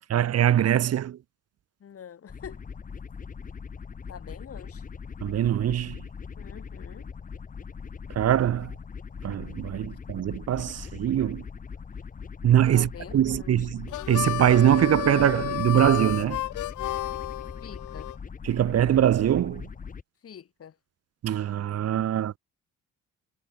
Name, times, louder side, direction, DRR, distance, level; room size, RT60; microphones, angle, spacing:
voice 1, 0.1-1.2 5.2-6.0 8.1-8.7 9.2-11.4 12.4-16.4 18.4-19.7 21.2-22.3, right 11 dB, 55° right, 0.9 m, -23 dB
voice 2, 1.8-2.7 4.1-4.9 6.4-7.1 12.7-13.7 17.6-18.1 20.2-20.8, left 8 dB, 50° left, 2.0 m, -45 dB
sound 1, 2.3-20.0, left 6 dB, 25° left, 0.9 m, -41 dB
Harmonica, 13.9-18.2, left 16 dB, 80° left, 1.1 m, -32 dB
cardioid pair, 90°, 30 cm